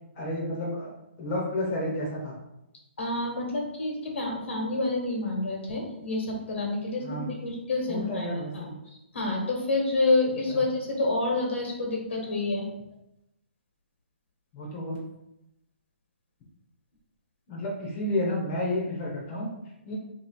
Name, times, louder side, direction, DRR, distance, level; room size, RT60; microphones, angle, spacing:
voice 1, 0.2-0.9 1.2-2.4 7.0-7.3 7.9-8.7 10.5-10.6 14.5-15.0 17.5-19.5 19.8-20.0, left 1 dB, 25° left, -4 dB, 0.8 m, -31 dB
voice 2, 3.0-8.3 8.5-12.7, left 2 dB, 75° left, 0 dB, 1.4 m, -28 dB
3.0 x 2.8 x 4.3 m, 0.86 s
hypercardioid pair, 160°, 7 cm